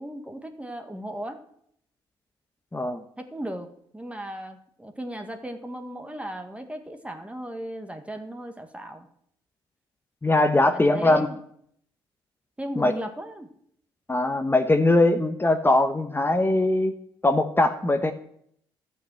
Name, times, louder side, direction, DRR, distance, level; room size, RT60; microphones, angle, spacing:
voice 1, 0.0-1.4 3.2-3.7 3.9-9.1 10.6-11.4 12.6-13.5, right 1 dB, 10° right, 5 dB, 1.7 m, -36 dB
voice 2, 2.7-3.0 10.2-11.3 12.8-12.9 14.1-16.9 17.2-18.1, left 2 dB, 20° left, 8 dB, 1.1 m, -21 dB
12.5 x 6.2 x 7.7 m, 0.69 s
hypercardioid pair, 50°, 12 cm